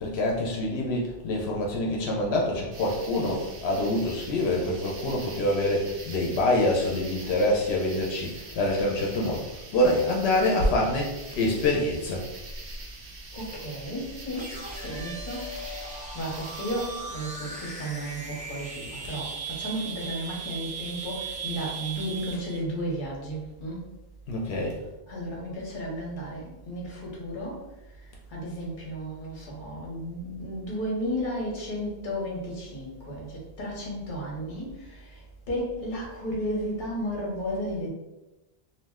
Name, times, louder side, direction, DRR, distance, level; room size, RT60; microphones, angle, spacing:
voice 1, 0.0-12.3 24.3-24.8, left 1 dB, 85° left, -1 dB, 0.8 m, -26 dB
sound 1, 2.7-17.0, right 2 dB, 65° right, 0.8 m, -43 dB
voice 2, 13.3-15.7 16.1-23.8 25.1-27.6 28.3-35.2 35.5-37.9, equal, 55° left, -3 dB, 1.0 m, -33 dB
sound 2, 14.3-22.6, right 4 dB, 15° right, 0.3 m, -38 dB
2.5 x 2.0 x 3.4 m, 1.0 s
omnidirectional pair, 1.0 m